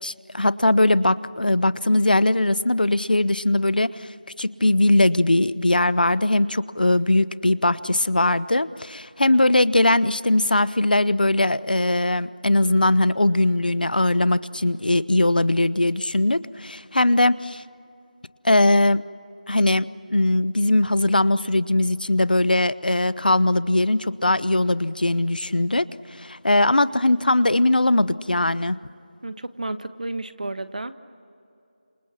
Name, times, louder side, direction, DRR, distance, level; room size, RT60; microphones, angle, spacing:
voice 1, 0.0-4.1 4.4-17.6 18.4-19.1 19.5-25.9 26.2-28.8, left 2 dB, 85° left, 17 dB, 1.0 m, -20 dB
voice 2, 29.2-30.9, right 2 dB, 60° right, 11 dB, 1.5 m, -32 dB
29.5 x 27.0 x 7.3 m, 2.7 s
figure-of-eight pair, 175°, 5 cm